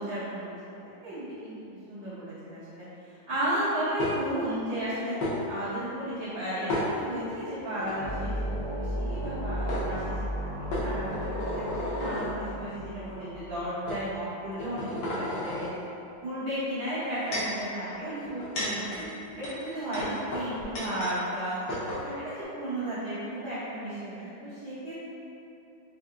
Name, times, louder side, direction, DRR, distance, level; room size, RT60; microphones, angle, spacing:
voice 1, 0.0-1.5 1.9-2.8 3.3-5.1 5.5-8.5 8.8-15.7 16.2-18.9 19.4-21.5 22.0-25.1, right 1 dB, 75° right, -17 dB, 2.1 m, -34 dB
sound 1, 4.0-4.5 5.2-5.3 6.7-7.4 7.8-8.0 9.2-9.3 9.7-9.9 10.7-12.3 13.1-13.2 13.9-14.0 14.5-15.7 16.8-17.6 18.2-21.2 21.4-21.5 21.7-22.0, left 1 dB, 60° left, 1.1 m, -33 dB
sound 2, 8.0-14.5, equal, 90° left, 0.4 m, -35 dB
4.8 x 2.8 x 2.4 m, 2.8 s
omnidirectional pair, 2.1 m